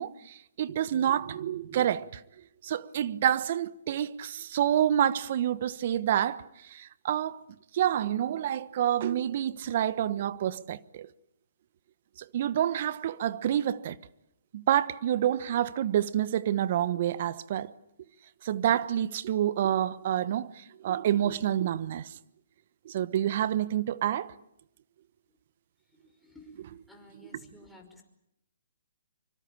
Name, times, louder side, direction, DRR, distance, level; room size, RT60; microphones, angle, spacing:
voice 1, 0.0-2.2 2.6-7.4 7.7-11.1 12.2-14.0 14.5-17.7 18.4-22.2 22.8-24.3, right 10 dB, 50° right, 1.1 m, -28 dB
voice 2, 25.8-28.0, left 1 dB, 5° left, 5.3 m, -54 dB
25.0 x 25.0 x 8.7 m
hypercardioid pair, 140°, 0 cm